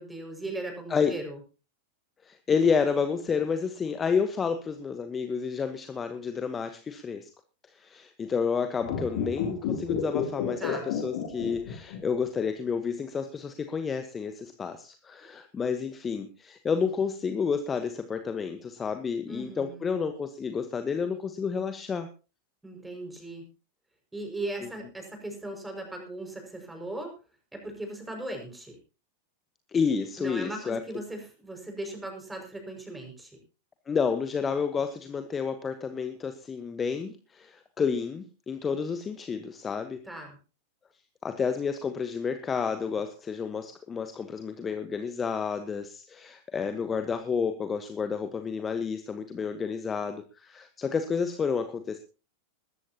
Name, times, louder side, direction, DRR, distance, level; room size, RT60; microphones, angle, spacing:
voice 1, 0.0-1.4 10.6-10.9 19.3-19.9 22.6-23.4 24.1-27.1 27.5-28.8 30.2-33.4 40.0-40.4, right 1 dB, 5° right, 3 dB, 5.9 m, -38 dB
voice 2, 2.2-7.3 7.7-22.1 29.7-30.8 33.9-40.0 41.2-52.0, left 6 dB, 20° left, 8 dB, 1.2 m, -30 dB
sound 1, 8.8-12.2 12.5-12.6, left 8 dB, 55° left, 3.2 m, -31 dB
20.5 x 14.0 x 2.9 m, 0.33 s
figure-of-eight pair, 90°, 0 cm